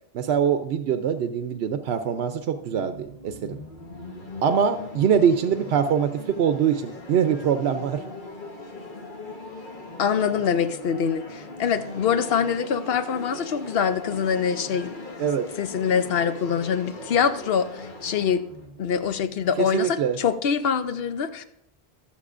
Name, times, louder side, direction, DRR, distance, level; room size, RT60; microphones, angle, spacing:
voice 1, 0.1-3.6 4.4-8.0 15.2-15.5 19.6-20.2, right 7 dB, 85° right, 8 dB, 0.9 m, -23 dB
sound 1, 2.2-19.9, left 2 dB, 55° left, 1.4 m, -40 dB
voice 2, 10.0-14.9 15.6-18.4 18.8-21.4, left 7 dB, 70° left, 10 dB, 0.9 m, -24 dB
21.0 x 7.3 x 2.5 m, 0.79 s
omnidirectional pair, 1.0 m